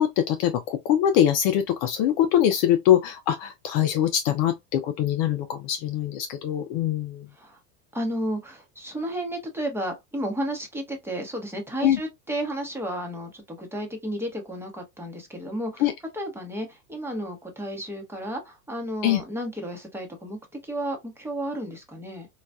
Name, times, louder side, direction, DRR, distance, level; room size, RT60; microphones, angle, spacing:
voice 1, 0.0-7.3 11.8-12.0 15.8-15.9 19.0-19.2, left 10 dB, 45° left, 0.5 m, -23 dB
voice 2, 7.9-15.9 16.1-22.3, right 1 dB, 5° right, 0.9 m, -32 dB
4.0 x 2.4 x 2.2 m
hypercardioid pair, 100°, 48 cm